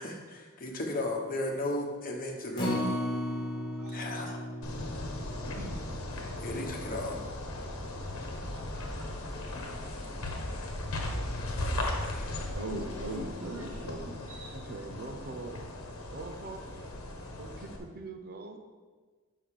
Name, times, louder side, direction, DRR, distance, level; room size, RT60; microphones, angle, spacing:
voice 1, 0.0-2.9 3.9-4.4 6.4-7.2 11.5-12.4, left 1 dB, 40° left, 0 dB, 1.2 m, -35 dB
Acoustic guitar, 2.6-8.9 9.3-9.4 9.8-9.9, equal, 20° left, 1.2 m, -37 dB
sound 1, 4.6-17.8, left 1 dB, 75° left, 1.1 m, -37 dB
voice 2, 5.2-5.8 14.5-15.6 16.1-16.9 17.4-18.6, right 3 dB, 45° right, 5 dB, 0.7 m, -43 dB
voice 3, 8.5-9.1 12.5-14.5, right 1 dB, 90° right, -1 dB, 0.8 m, -40 dB
5.5 x 5.4 x 6.6 m, 1.4 s
head